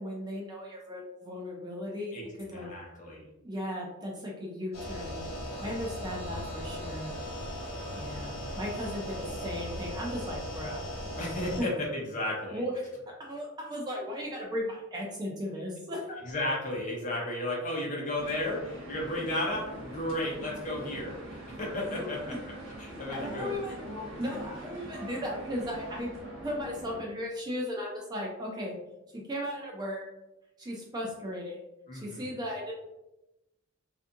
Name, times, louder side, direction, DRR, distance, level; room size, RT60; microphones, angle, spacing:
voice 1, 0.0-2.7 3.4-5.2 5.6-7.2 7.9-10.9 11.6-11.7 12.5-16.1 22.0-22.1 22.9-23.8 24.2-26.1 26.4-28.8 29.1-30.0 30.6-31.6 31.9-32.7, equal, 20° right, -2 dB, 0.4 m, -36 dB
voice 2, 2.5-3.3 11.2-12.6 16.3-22.2 22.8-23.6 31.9-32.3, left 1 dB, 35° left, -2 dB, 0.7 m, -33 dB
sound 1, 4.7-11.6, equal, 85° left, 0.9 m, -38 dB
sound 2, 18.1-27.0, equal, 65° right, 0.7 m, -43 dB
2.5 x 2.4 x 2.6 m, 0.95 s
head